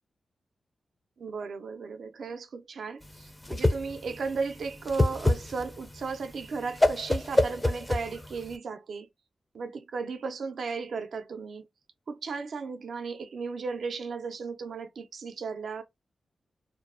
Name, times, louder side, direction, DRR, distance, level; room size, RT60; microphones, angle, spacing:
voice 1, 1.2-9.1 9.6-11.7 12.1-15.8, right 4 dB, 75° right, 0.4 m, -35 dB
Whoosh swoosh swish, 3.0-8.5, left 1 dB, 15° left, 0.4 m, -27 dB
2.5 x 2.0 x 2.4 m
cardioid pair, 75°, 0 cm